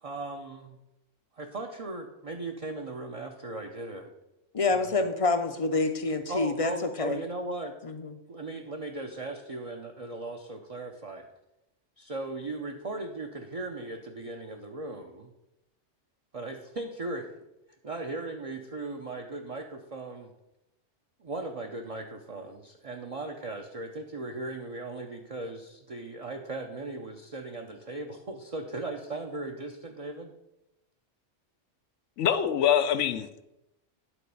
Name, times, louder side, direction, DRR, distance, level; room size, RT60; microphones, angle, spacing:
voice 1, 0.0-0.8 1.3-4.1 4.7-4.9 6.3-7.7 8.3-11.3 12.0-15.3 16.3-17.3 17.8-20.3 21.2-30.3, right 2 dB, 35° right, 0.7 m, -38 dB
voice 2, 4.5-7.2 7.8-8.1, left 3 dB, 40° left, 0.6 m, -27 dB
voice 3, 32.2-33.4, left 9 dB, 80° left, 1.0 m, -25 dB
10.0 x 4.1 x 6.8 m
omnidirectional pair, 1.2 m